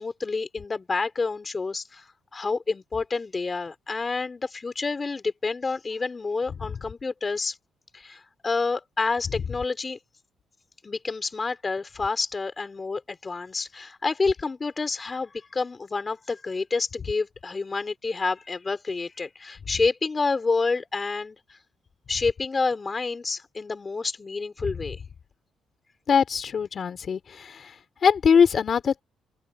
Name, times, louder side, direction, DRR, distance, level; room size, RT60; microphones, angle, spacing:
voice 1, 0.0-7.6 7.9-10.0 10.8-21.4 22.1-25.0, left 4 dB, 30° left, 3.9 m, -28 dB
voice 2, 26.1-27.7 28.0-29.0, left 6 dB, 50° left, 3.9 m, -22 dB
open air
cardioid pair, 90°, 0 cm